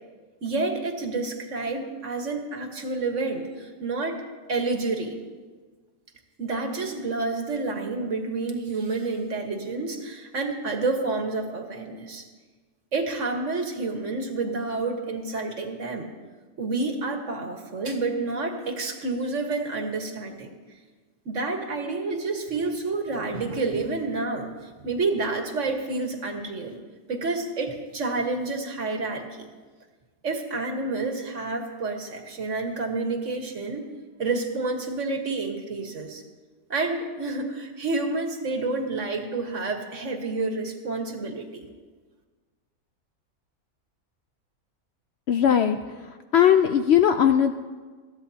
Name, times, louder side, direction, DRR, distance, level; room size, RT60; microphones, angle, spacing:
voice 1, 0.4-4.2 4.5-5.2 6.4-12.2 12.9-16.1 16.6-20.5 21.3-24.5 24.8-26.8 27.1-29.5 30.2-33.8 34.2-36.2 36.7-41.7, right 3 dB, 60° right, 3 dB, 1.8 m, -29 dB
voice 2, 45.3-45.8 46.3-47.5, left 9 dB, 65° left, 7 dB, 0.7 m, -18 dB
21.5 x 14.5 x 2.8 m, 1.4 s
omnidirectional pair, 1.5 m